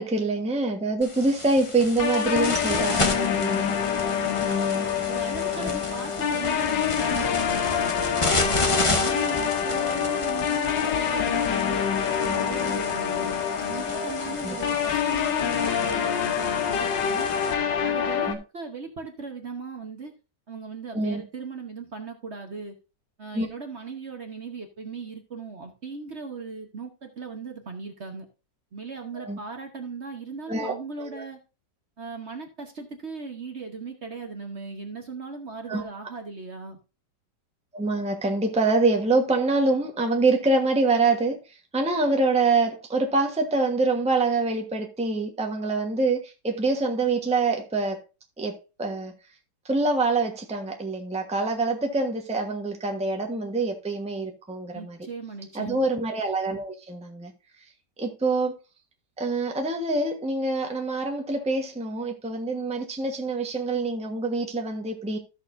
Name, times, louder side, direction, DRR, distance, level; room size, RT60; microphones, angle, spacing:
voice 1, 0.0-3.7 4.4-4.9 5.6-5.8 8.6-9.0 13.9-14.6 15.0-15.4 18.1-18.4 20.9-21.2 23.3-23.5 29.1-29.4 30.5-31.2 35.7-35.8 37.7-48.0 48.4-49.1 49.6-55.0 55.5-57.3 58.0-58.5 59.2-65.2, right 3 dB, 5° right, 1.0 m, -26 dB
sound 1, 1.0-17.5, left 2 dB, 25° left, 0.8 m, -32 dB
sound 2, 2.0-18.3, left 8 dB, 85° left, 1.6 m, -26 dB
voice 2, 4.1-4.6 5.1-7.9 8.4-11.8 12.2-17.3 17.8-20.1 20.5-22.8 23.2-28.3 28.7-31.4 32.0-36.8 54.7-55.8, right 4 dB, 45° right, 1.3 m, -38 dB
14.0 x 6.5 x 2.6 m
omnidirectional pair, 1.9 m